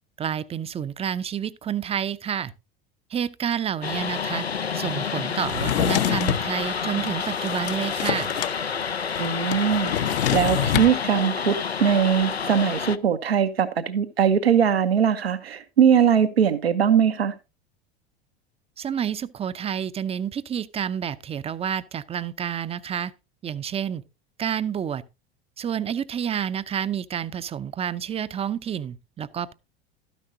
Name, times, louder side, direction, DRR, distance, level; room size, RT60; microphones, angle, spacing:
voice 1, 0.2-2.5 3.1-4.5 4.7-8.3 18.8-23.1 23.4-24.0 24.4-25.0 25.6-29.5, right 8 dB, 20° right, 0.6 m, -29 dB
sound 1, 3.8-13.0, left 6 dB, 90° left, 0.6 m, -29 dB
Drawer open or close, 5.4-6.5 7.1-8.6 8.8-8.9 9.1-10.9, left 11 dB, 60° left, 1.0 m, -26 dB
voice 2, 9.2-9.9 10.3-17.3, right 8 dB, 75° right, 1.0 m, -21 dB
13.0 x 10.0 x 2.7 m
figure-of-eight pair, 80°, 31 cm